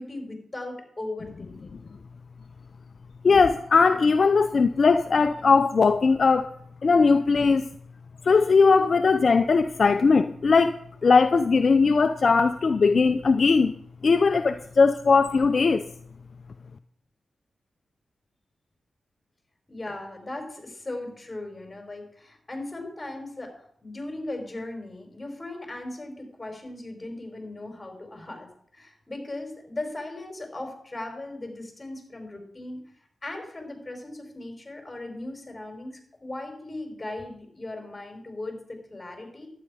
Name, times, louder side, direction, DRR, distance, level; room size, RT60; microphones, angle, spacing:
voice 1, 0.0-1.8 19.7-23.5 23.8-32.8 33.2-35.9 36.2-39.5, left 2 dB, 25° left, 4.5 m, -38 dB
voice 2, 3.2-6.5 6.8-7.7 8.2-13.7 14.0-15.8, left 4 dB, 60° left, 0.5 m, -19 dB
12.0 x 9.5 x 4.9 m
cardioid pair, 45°, 0 cm